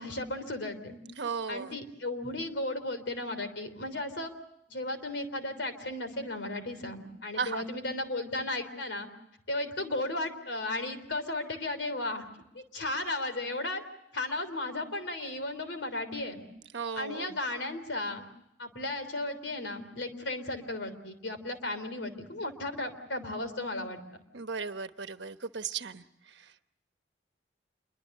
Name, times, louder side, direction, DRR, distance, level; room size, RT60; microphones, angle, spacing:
voice 1, 0.0-1.0 1.5-4.3 4.7-9.1 9.5-12.2 12.5-13.8 14.1-16.4 16.9-18.2 18.6-24.0, left 2 dB, 85° left, 9 dB, 3.3 m, -35 dB
voice 2, 1.2-1.7 7.4-7.7 16.7-17.4 24.3-26.7, right 5 dB, 75° right, 10 dB, 1.1 m, -36 dB
27.5 x 23.0 x 6.6 m, 0.83 s
head